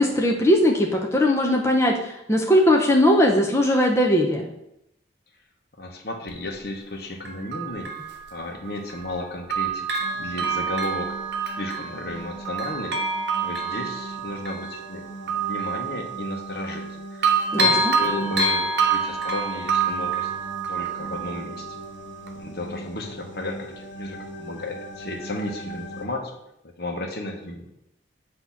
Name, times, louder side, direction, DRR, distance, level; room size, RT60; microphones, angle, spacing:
voice 1, 0.0-4.5 17.5-17.9, left 1 dB, 15° left, 0 dB, 0.6 m, -19 dB
voice 2, 5.8-7.9 8.3-11.2 11.4-12.9 13.4-16.8 17.1-20.3 20.7-21.7 22.3-26.3 26.8-27.6, left 1 dB, 55° left, 3 dB, 1.0 m, -33 dB
Bell, 6.3-6.4 7.2-9.2 9.5-16.9 17.2-21.8 22.3-22.4, right 4 dB, 60° right, 0.9 m, -27 dB
sound 1, 10.0-26.1, right 1 dB, 75° left, 1.1 m, -40 dB
8.3 x 2.9 x 5.7 m, 0.81 s
head